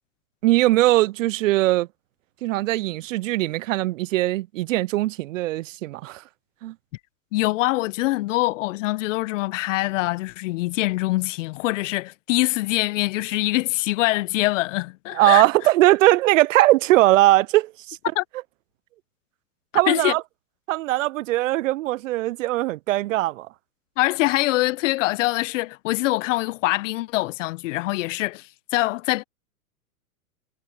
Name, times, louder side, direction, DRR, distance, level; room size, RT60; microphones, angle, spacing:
voice 1, 0.4-1.9 2.4-6.2 6.6-6.7 15.1-18.0 19.7-20.2 20.7-23.5, right 17 dB, 60° right, 0.6 m, -20 dB
voice 2, 7.3-15.4 18.1-18.2 19.9-20.1 24.0-29.2, left 19 dB, 55° left, 1.1 m, -24 dB
hypercardioid pair, 110°, 46 cm